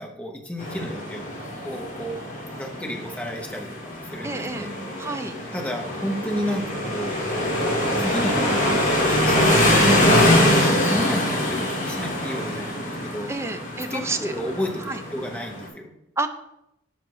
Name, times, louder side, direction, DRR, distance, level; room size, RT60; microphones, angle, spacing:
voice 1, 0.0-1.3 1.6-2.2 2.6-4.8 5.5-7.2 8.0-13.3 13.9-15.9, equal, 5° left, 1 dB, 0.8 m, -32 dB
sound 1, 0.6-15.7, left 1 dB, 45° left, 1.6 m, -23 dB
voice 2, 4.2-4.7 5.0-5.3 13.3-14.3 14.9-15.0 16.2-16.3, right 3 dB, 15° right, 8 dB, 0.4 m, -29 dB
5.6 x 5.0 x 4.7 m, 0.84 s
head